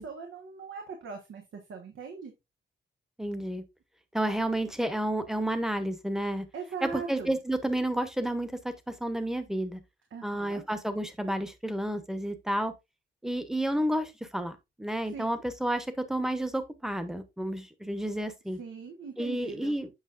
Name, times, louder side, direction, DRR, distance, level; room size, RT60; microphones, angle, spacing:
voice 1, 0.0-2.3 6.5-7.4 10.1-10.6 15.1-15.3 18.6-19.7, right 5 dB, 85° right, 1.3 m, -40 dB
voice 2, 3.2-3.6 4.1-6.4 6.8-9.8 10.2-12.7 13.2-18.6 19.2-19.9, right 1 dB, ahead, 0.9 m, -31 dB
8.1 x 5.9 x 2.5 m
wide cardioid pair, 135°, 20 cm